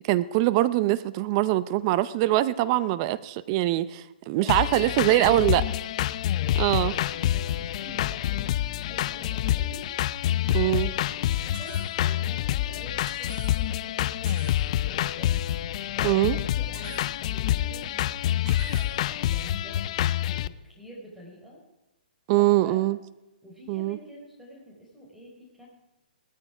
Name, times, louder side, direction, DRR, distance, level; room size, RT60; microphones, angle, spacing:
voice 1, 0.1-5.6 6.6-6.9 10.5-10.9 16.0-16.4 22.3-23.0 23.7-24.0, right 16 dB, 35° right, 16 dB, 0.6 m, -23 dB
voice 2, 4.4-5.5 6.3-9.8 10.6-15.3 15.9-18.1 18.8-19.9 20.2-21.6 22.3-22.8 23.4-25.7, equal, 5° right, -3 dB, 4.6 m, -46 dB
sound 1, 4.5-20.5, left 12 dB, 40° left, 0.5 m, -27 dB
sound 2, 11.5-11.9 13.1-13.6 14.3-14.6 16.7-17.0 18.5-18.9, right 4 dB, 50° right, 4.6 m, -44 dB
18.0 x 14.0 x 5.0 m, 0.97 s
hypercardioid pair, 140°, 5 cm